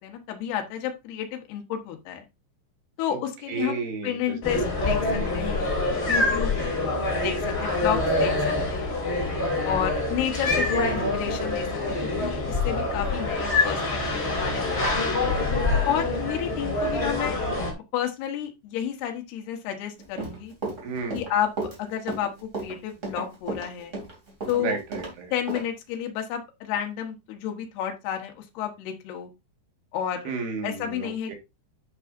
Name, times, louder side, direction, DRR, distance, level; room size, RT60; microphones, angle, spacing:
voice 1, 0.0-2.2 3.0-6.5 7.1-9.0 9.6-11.7 12.0-15.2 15.8-17.4 17.9-20.5 21.1-23.9 24.5-24.8 25.3-29.3 29.9-30.3 30.6-31.4, left 10 dB, 75° left, 3 dB, 3.4 m, -31 dB
voice 2, 3.5-4.7 10.7-11.3 20.8-21.2 24.6-25.3 30.3-31.4, right 5 dB, 70° right, 3 dB, 3.8 m, -33 dB
sound 1, 4.4-17.7, left 2 dB, 20° left, 2.0 m, -26 dB
Run, 20.0-25.1 25.5-25.6, right 3 dB, 20° right, 2.8 m, -33 dB
10.5 x 6.4 x 2.6 m, 0.23 s
omnidirectional pair, 4.9 m